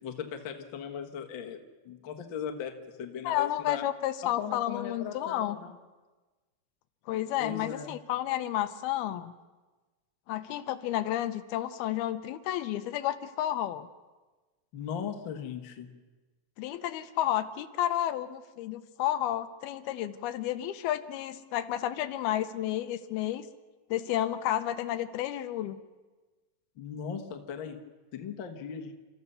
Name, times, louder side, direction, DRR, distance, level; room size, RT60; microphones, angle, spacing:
voice 1, 0.0-1.6 1.8-3.8 4.2-5.8 7.4-7.9 14.7-15.9 26.8-27.8 28.1-28.9, left 7 dB, 55° left, 4 dB, 1.3 m, -38 dB
voice 2, 3.2-5.6 7.1-9.3 10.3-13.9 16.6-23.4 23.9-25.8, left 12 dB, 80° left, 11 dB, 2.6 m, -31 dB
29.5 x 14.0 x 6.9 m, 1.3 s
omnidirectional pair, 4.5 m